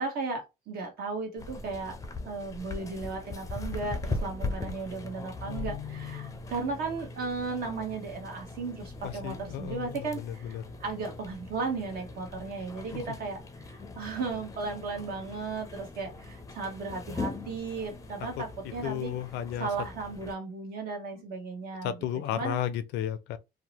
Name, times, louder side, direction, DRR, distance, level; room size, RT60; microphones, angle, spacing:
voice 1, 0.0-2.0 2.2-19.1 19.6-21.9 22.3-22.6, right 4 dB, 65° right, 1.1 m, -35 dB
sound 1, 1.4-20.3, left 3 dB, 20° left, 0.4 m, -40 dB
voice 2, 5.5-6.4 9.0-10.7 12.9-13.2 18.2-19.7 21.1-21.2 21.8-23.4, left 10 dB, 85° left, 0.4 m, -35 dB
2.7 x 2.0 x 2.8 m
cardioid pair, 110°, 17 cm